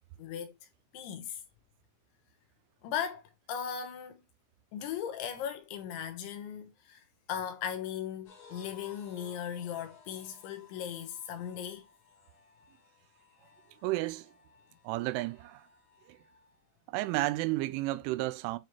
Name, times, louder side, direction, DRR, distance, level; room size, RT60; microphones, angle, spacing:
voice 1, 0.2-0.5 0.9-1.4 2.8-3.2 3.5-4.2 4.7-7.0 7.3-11.8, left 9 dB, 75° left, 3.3 m, -37 dB
sound 1, 8.2-16.6, left 5 dB, 45° left, 3.6 m, -59 dB
voice 2, 13.8-14.3 14.8-15.6 16.1-16.2 16.9-18.6, right 18 dB, 85° right, 2.9 m, -32 dB
9.2 x 4.8 x 2.9 m
omnidirectional pair, 5.7 m